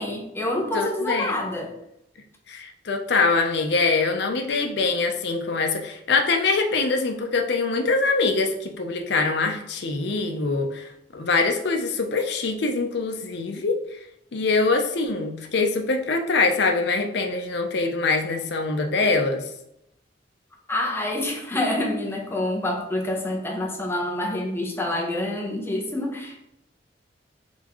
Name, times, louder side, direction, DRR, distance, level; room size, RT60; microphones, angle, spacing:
voice 1, 0.0-1.7 20.7-26.4, left 1 dB, 15° left, -1 dB, 0.8 m, -27 dB
voice 2, 0.7-1.3 2.5-14.0 14.3-19.4, left 3 dB, 65° left, 4 dB, 0.6 m, -24 dB
4.2 x 3.5 x 3.0 m, 0.78 s
head